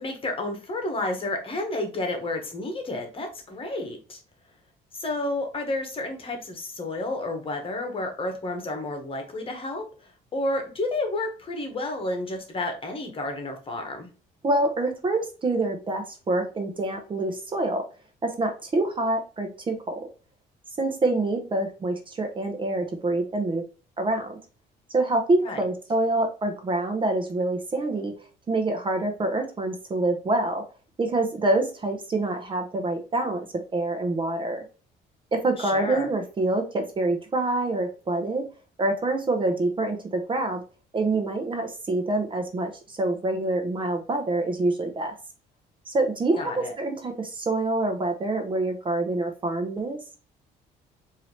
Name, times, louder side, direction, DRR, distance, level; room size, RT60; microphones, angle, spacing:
voice 1, 0.0-4.2 4.9-14.1 25.4-25.6 35.6-36.1 46.4-46.7, left 2 dB, 30° left, 5 dB, 1.3 m, -31 dB
voice 2, 14.4-17.8 18.2-20.0 20.8-23.6 24.0-24.4 24.9-28.1 28.5-30.6 31.0-33.4 33.7-34.6 35.3-38.4 38.8-40.6 40.9-45.1 45.9-50.0, right 2 dB, 30° right, 5 dB, 0.9 m, -26 dB
4.6 x 2.8 x 3.2 m, 0.35 s
cardioid pair, 110°, 17 cm